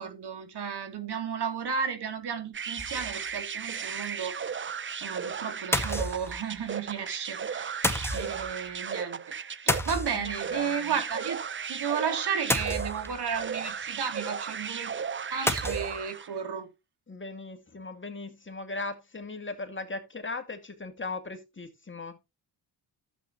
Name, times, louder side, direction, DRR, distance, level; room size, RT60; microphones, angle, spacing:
voice 1, 0.0-4.5 4.8-7.9 8.1-9.2 9.6-11.4 11.7-15.0 15.3-16.7, right 7 dB, 60° right, 3.0 m, -33 dB
sound 1, 2.5-16.4, right 6 dB, 25° right, 0.6 m, -36 dB
sound 2, 2.8-3.3 3.7-3.8 4.0-4.1 5.7-6.6 7.8-8.5 9.7-10.5 12.5-13.3 15.5-16.0, left 1 dB, 5° left, 1.7 m, -30 dB
voice 2, 10.1-11.0 17.1-22.2, left 3 dB, 25° left, 2.2 m, -38 dB
12.0 x 8.1 x 3.0 m
supercardioid pair, 60°, 45 cm